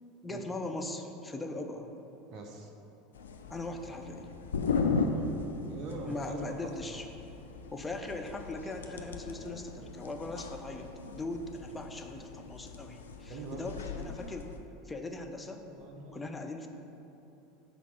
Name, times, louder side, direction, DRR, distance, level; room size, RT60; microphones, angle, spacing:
voice 1, 0.2-1.9 3.5-4.3 6.0-7.1 7.7-14.5 14.8-15.6 16.1-16.7, left 2 dB, 10° left, 4 dB, 0.6 m, -40 dB
voice 2, 2.3-2.7 5.7-6.4 13.3-13.6 15.6-16.5, right 3 dB, 40° right, 1 dB, 0.7 m, -44 dB
sound 1, 3.1-14.6, left 4 dB, 70° left, 0.4 m, -37 dB
5.9 x 4.0 x 6.0 m, 2.9 s
figure-of-eight pair, 75°, 0 cm